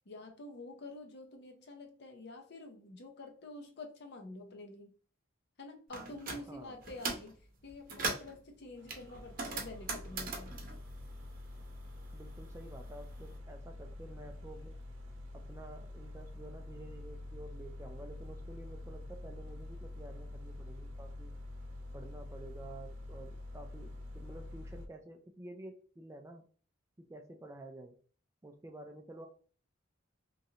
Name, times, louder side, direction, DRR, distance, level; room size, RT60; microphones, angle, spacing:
voice 1, 0.1-4.9 5.6-10.6, left 2 dB, 60° left, 4 dB, 0.7 m, -48 dB
sound 1, 5.9-6.4 6.8-7.3 7.7-8.4 8.9-11.8 12.1-13.2, right 3 dB, 50° right, 0.8 m, -40 dB
voice 2, 6.5-6.8 12.1-14.8 15.3-21.3 21.9-26.5 27.0-28.0 28.4-29.3, right 1 dB, 15° right, 4 dB, 0.3 m, -50 dB
sound 2, 8.8-24.9, left 1 dB, 80° right, 0.7 m, -47 dB
3.0 x 2.5 x 2.8 m, 0.42 s
head